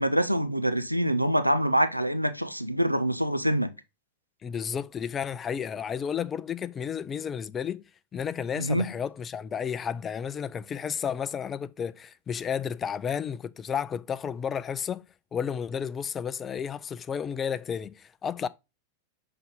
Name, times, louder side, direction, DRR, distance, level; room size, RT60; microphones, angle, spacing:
voice 1, 0.0-3.7 8.6-8.9, equal, 90° right, 0.5 m, -25 dB
voice 2, 4.4-7.8 8.1-15.0 15.3-18.5, left 7 dB, 25° left, 0.4 m, -32 dB
6.8 x 3.9 x 3.6 m
figure-of-eight pair, 90°, 0 cm